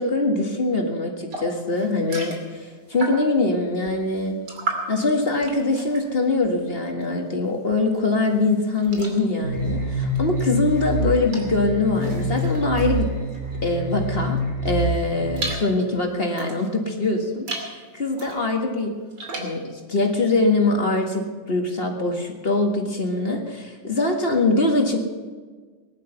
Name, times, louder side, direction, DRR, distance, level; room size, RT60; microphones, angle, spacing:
voice 1, 0.0-4.4 4.9-13.1 13.6-19.0 19.4-25.0, left 2 dB, 35° left, 2 dB, 1.8 m, -23 dB
sound 1, 1.3-3.5 3.8-7.3 7.6-13.9 14.4-16.8 17.3-17.8 18.1-19.6, right 2 dB, 65° right, 3.2 m, -36 dB
sound 2, 9.4-15.5, equal, 30° right, 5.1 m, -26 dB
19.0 x 11.0 x 5.7 m, 1.4 s
omnidirectional pair, 2.0 m